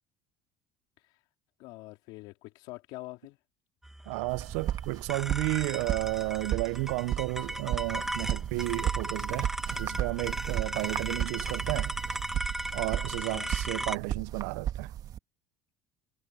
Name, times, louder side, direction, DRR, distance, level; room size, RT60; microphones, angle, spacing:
voice 1, 1.6-3.4 13.1-13.5, left 21 dB, 70° left, 3.8 m, -45 dB
sound 1, 3.8-14.0, right 1 dB, 5° right, 2.2 m, -37 dB
voice 2, 4.1-12.0 12.7-14.9, right 24 dB, 80° right, 0.8 m, -32 dB
sound 2, 4.3-15.2, right 11 dB, 55° right, 2.4 m, -35 dB
hypercardioid pair, 80°, 8 cm